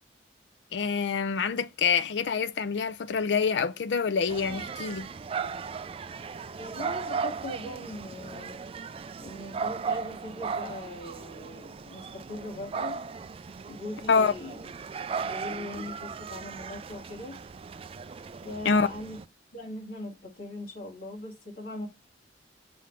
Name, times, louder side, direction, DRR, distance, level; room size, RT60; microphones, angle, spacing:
voice 1, 0.7-5.1 14.1-14.3 18.6-18.9, left 5 dB, 85° left, 0.5 m, -26 dB
sound 1, 4.3-19.2, right 5 dB, 35° right, 0.3 m, -37 dB
voice 2, 6.6-8.6 9.2-13.0 13.7-14.6 15.3-17.4 18.4-19.2 19.5-21.9, left 1 dB, 55° left, 2.7 m, -40 dB
6.2 x 3.6 x 5.7 m
head